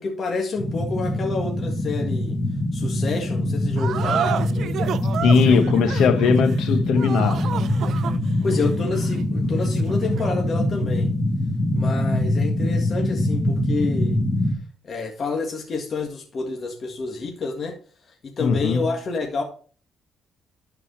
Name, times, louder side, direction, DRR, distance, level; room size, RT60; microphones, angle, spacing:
voice 1, 0.0-2.4 2.7-4.8 8.4-11.1 11.7-14.2 14.8-17.8 18.2-19.4, left 3 dB, 50° left, 1.8 m, -29 dB
sound 1, 0.6-14.5, left 1 dB, 20° left, 2.4 m, -23 dB
sound 2, 3.8-10.5, right 9 dB, 65° right, 0.6 m, -31 dB
voice 2, 5.2-7.4 18.4-18.9, left 5 dB, 80° left, 1.0 m, -19 dB
11.5 x 5.0 x 4.3 m
cardioid pair, 90°, 0 cm